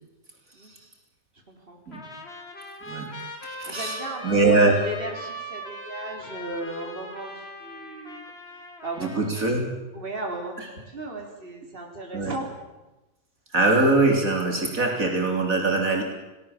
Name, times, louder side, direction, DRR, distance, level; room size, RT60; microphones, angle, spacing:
voice 1, 1.5-1.8 3.6-8.2 8.5-9.3 9.9-12.5, right 2 dB, 35° right, 2 dB, 3.8 m, -36 dB
Trumpet, 1.9-9.6, equal, 40° left, 3.4 m, -40 dB
voice 2, 3.4-4.0 4.2-4.8 9.0-9.7 12.1-12.3 13.5-16.0, right 2 dB, 60° right, 2 dB, 3.9 m, -22 dB
30.0 x 18.5 x 7.3 m, 1.0 s
omnidirectional pair, 1.6 m